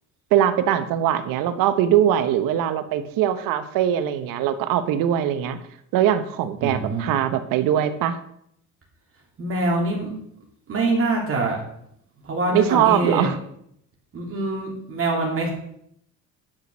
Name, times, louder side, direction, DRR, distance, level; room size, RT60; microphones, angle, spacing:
voice 1, 0.3-5.6 5.9-8.2 12.5-13.4, right 10 dB, 75° right, 11 dB, 1.1 m, -21 dB
voice 2, 6.6-7.0 9.4-10.1 10.7-11.6 12.2-13.3 14.1-15.5, right 2 dB, 40° right, -1 dB, 3.1 m, -24 dB
10.5 x 6.1 x 6.2 m, 0.72 s
supercardioid pair, 95°, 34 cm